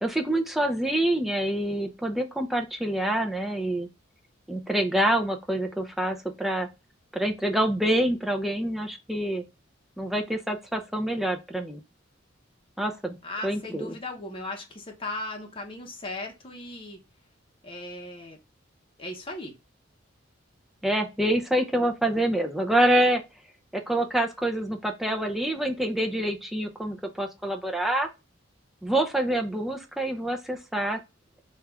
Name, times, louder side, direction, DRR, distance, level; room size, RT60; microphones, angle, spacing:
voice 1, 0.0-3.9 4.5-6.7 7.1-9.4 10.0-11.8 12.8-13.1 13.4-13.9 20.8-23.2 23.7-28.1 28.8-31.0, right 1 dB, ahead, 3 dB, 0.5 m, -26 dB
voice 2, 13.2-17.0 17.6-18.4 19.0-19.5, left 2 dB, 30° left, 1 dB, 0.7 m, -37 dB
3.1 x 2.3 x 3.4 m, 0.26 s
head